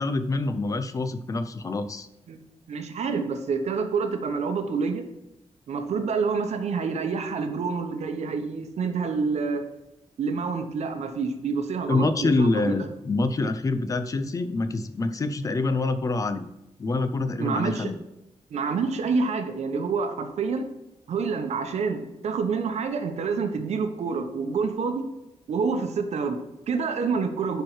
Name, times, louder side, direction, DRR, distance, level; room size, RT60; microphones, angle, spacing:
voice 1, 0.0-2.1 11.9-16.5 16.8-18.0, left 3 dB, 30° left, 11 dB, 0.5 m, -26 dB
voice 2, 2.7-5.0 5.7-9.6 10.2-12.9 17.4-17.9 18.5-20.7 21.1-25.1 25.5-27.6, right 5 dB, 80° right, 7 dB, 1.0 m, -27 dB
10.5 x 4.6 x 4.6 m, 0.91 s
wide cardioid pair, 175°, 11 cm